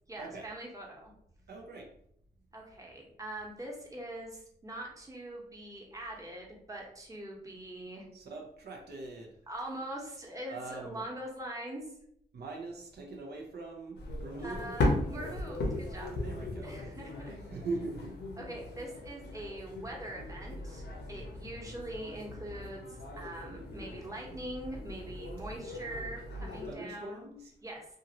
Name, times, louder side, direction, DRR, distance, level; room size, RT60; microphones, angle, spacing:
voice 1, 0.1-1.1 2.5-8.1 9.5-11.8 14.4-16.1 16.6-17.3 18.4-27.3 27.6-27.9, right 1 dB, 20° right, -2 dB, 1.0 m, -43 dB
voice 2, 1.5-1.9 8.1-9.3 10.5-11.0 12.3-14.7 16.2-16.8 17.5-18.1 26.6-27.5, right 3 dB, 70° right, 1 dB, 0.6 m, -41 dB
sound 1, 13.9-26.7, left 2 dB, 80° left, 0.7 m, -38 dB
2.7 x 2.4 x 2.8 m, 0.70 s
cardioid pair, 65°, 17 cm